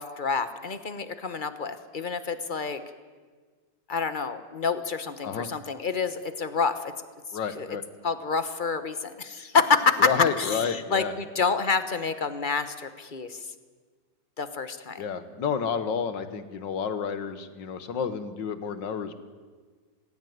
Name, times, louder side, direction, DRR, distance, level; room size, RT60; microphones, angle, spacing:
voice 1, 0.0-2.8 3.9-6.9 7.6-7.7 8.0-10.0 10.4-13.5 14.4-15.0, left 5 dB, 30° left, 11 dB, 1.1 m, -28 dB
voice 2, 7.3-7.8 10.0-11.1 15.0-19.2, left 6 dB, 85° left, 11 dB, 2.0 m, -30 dB
20.0 x 16.5 x 9.5 m, 1.5 s
omnidirectional pair, 1.9 m